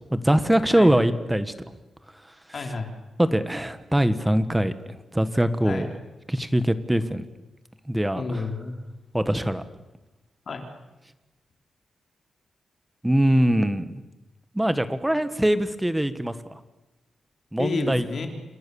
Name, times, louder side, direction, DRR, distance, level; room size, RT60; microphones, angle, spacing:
voice 1, 0.1-1.5 3.2-4.7 5.1-5.9 6.3-7.2 7.9-8.4 9.1-9.6 13.0-13.9 14.5-16.3 17.5-18.1, right 1 dB, 5° right, 11 dB, 1.6 m, -22 dB
voice 2, 2.5-2.9 5.6-5.9 8.1-8.8 10.5-10.7 17.6-18.3, left 3 dB, 45° left, 4 dB, 4.2 m, -30 dB
29.0 x 28.5 x 7.2 m, 1.1 s
wide cardioid pair, 170°, 0 cm